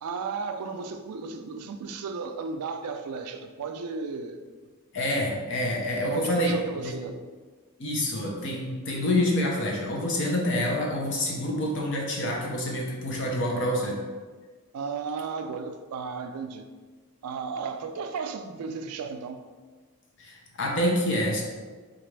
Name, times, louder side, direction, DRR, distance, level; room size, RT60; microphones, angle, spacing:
voice 1, 0.0-4.4 6.0-7.2 14.7-16.7 17.2-19.4, right 5 dB, 90° right, 7 dB, 0.4 m, -34 dB
voice 2, 4.9-6.9 7.8-14.0 20.2-21.5, left 1 dB, 55° left, -2 dB, 0.7 m, -27 dB
4.1 x 2.5 x 3.2 m, 1.4 s
head